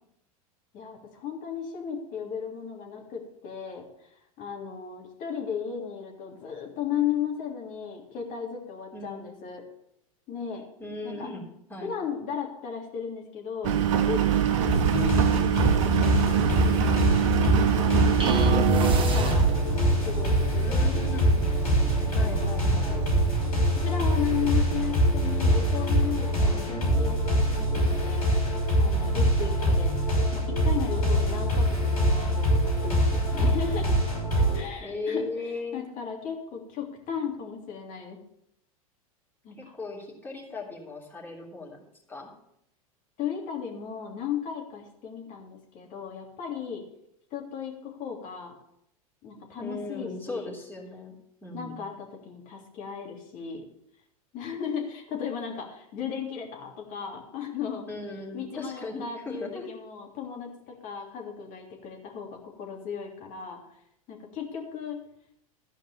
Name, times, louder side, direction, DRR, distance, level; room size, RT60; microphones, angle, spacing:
voice 1, 0.7-3.9 4.4-9.6 10.3-10.6 11.0-11.3 11.8-13.8 14.0-16.3 16.7-17.0 17.4-18.1 18.5-19.5 20.0-20.9 22.2-22.5 23.7-28.3 28.8-29.9 30.3-33.9 34.5-35.2 35.7-38.2 39.4-39.7 43.2-46.8 47.3-48.5 49.2-50.5 51.5-53.6 54.3-57.9 58.3-63.6 64.1-65.0, left 7 dB, 45° left, 1 dB, 3.2 m, -35 dB
voice 2, 8.9-9.3 10.8-11.4 11.7-11.9 20.6-21.6 22.1-23.1 34.8-35.8 39.6-41.8 42.1-42.3 49.6-51.8 57.9-59.7, left 3 dB, 10° left, -1 dB, 3.3 m, -37 dB
Engine, 13.6-23.4, right 10 dB, 60° right, 1.0 m, -26 dB
sound 1, 14.7-34.6, equal, 80° left, 6.2 m, -24 dB
sound 2, 18.2-19.9, equal, 30° right, 2.1 m, -27 dB
13.0 x 5.2 x 8.5 m, 0.76 s
hypercardioid pair, 90°, 18 cm